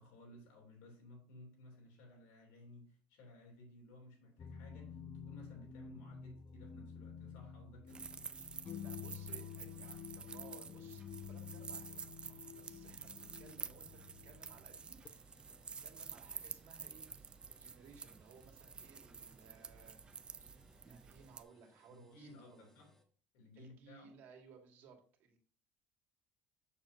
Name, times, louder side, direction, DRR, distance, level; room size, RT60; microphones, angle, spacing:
voice 1, 0.0-8.1 21.9-22.9 23.3-24.1, left 1 dB, 80° left, 3.1 m, -58 dB
sound 1, 4.4-15.1, left 7 dB, 35° left, 0.6 m, -50 dB
sound 2, 7.9-21.4, right 5 dB, 25° right, 0.4 m, -50 dB
voice 2, 8.8-15.4 15.8-22.7 23.6-25.4, right 5 dB, 65° right, 2.2 m, -61 dB
sound 3, 14.8-23.0, left 1 dB, 10° left, 1.2 m, -71 dB
7.6 x 6.8 x 2.8 m
cardioid pair, 125°, 4 cm